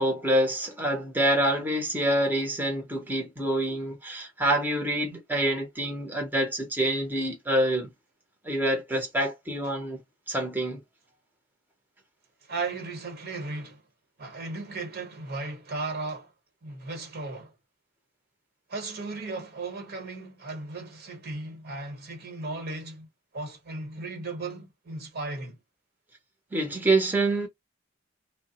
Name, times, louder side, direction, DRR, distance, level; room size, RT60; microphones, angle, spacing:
voice 1, 0.0-7.9 8.4-10.0 10.3-10.8 26.5-27.5, right 1 dB, 10° right, 0.7 m, -26 dB
voice 2, 12.4-13.8 14.2-16.3 16.6-17.5 18.7-23.1 23.3-25.6, right 3 dB, 55° right, 1.1 m, -36 dB
3.1 x 2.0 x 2.8 m
head